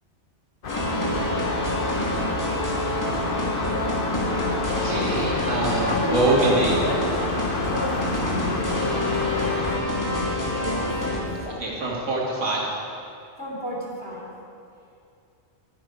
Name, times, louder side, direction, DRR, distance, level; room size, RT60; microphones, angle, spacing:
sound 1, 0.6-9.8, left 3 dB, 50° left, 1.0 m, -30 dB
sound 2, 0.7-11.2, left 1 dB, 15° left, 1.6 m, -27 dB
voice 1, 4.8-6.8 11.6-12.8, right 2 dB, 90° right, -3 dB, 2.2 m, -24 dB
voice 2, 5.7-7.1 7.6-8.8 10.6-11.0 11.4-11.6 13.4-14.3, equal, 10° right, -4 dB, 2.4 m, -32 dB
11.0 x 10.5 x 4.8 m, 2.5 s
omnidirectional pair, 1.2 m